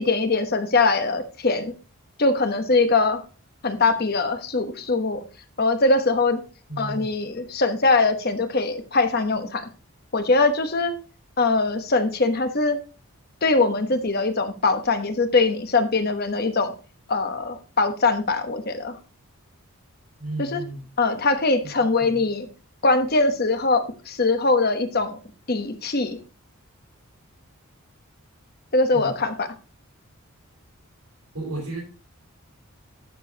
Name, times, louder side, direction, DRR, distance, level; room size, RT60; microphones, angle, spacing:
voice 1, 0.0-1.7 2.2-3.2 3.6-5.2 5.6-6.4 6.8-9.7 10.1-10.9 11.4-12.8 13.4-16.7 17.1-19.0 20.4-20.6 21.0-22.5 22.8-25.2 25.5-26.2 28.7-29.5, left 3 dB, 45° left, 8 dB, 1.0 m, -22 dB
voice 2, 6.7-7.1 20.2-20.8 22.0-22.2 28.9-29.1 31.3-31.8, right 2 dB, 85° right, -4 dB, 3.8 m, -33 dB
12.0 x 6.9 x 2.8 m, 0.35 s
head